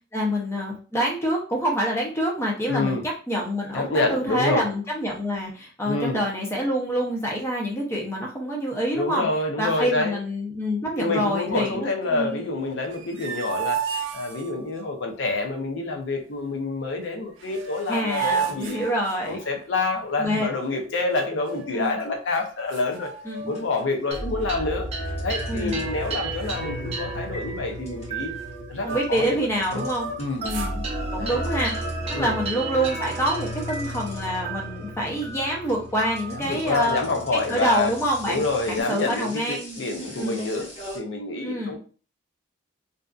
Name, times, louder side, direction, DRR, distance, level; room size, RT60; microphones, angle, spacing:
voice 1, 0.1-3.0 3.3-9.3 9.6-12.4 17.9-19.4 20.2-20.5 21.7-22.0 23.3-23.5 25.5-25.8 28.8-30.8 31.1-31.8 32.1-37.0 37.3-39.8 40.2-40.4 41.4-41.8, equal, 15° left, -2 dB, 0.6 m, -26 dB
voice 2, 2.7-3.0 3.7-4.7 5.9-6.2 8.9-10.2 11.0-13.9 14.1-18.8 19.3-23.1 23.5-24.9 25.2-28.3 28.7-29.9 30.2-30.5 31.2-31.4 32.1-32.3 36.3-37.9 38.3-40.7 40.9-41.8, left 3 dB, 70° left, 3 dB, 0.5 m, -27 dB
sound 1, 12.8-14.9 17.0-17.1 17.4-19.6 21.0-21.8 22.3-22.4 22.7-23.8 24.1-24.5 25.0-25.7 26.0-26.1 26.4-29.3 29.7-30.8, right 6 dB, 85° right, 0.5 m, -33 dB
sound 2, 23.0-23.2 23.5-24.5 25.2-30.6 30.8-41.0, left 1 dB, 35° left, 0.9 m, -44 dB
sound 3, 24.1-38.8, right 1 dB, 35° right, 0.5 m, -33 dB
2.6 x 2.3 x 2.3 m, 0.37 s
head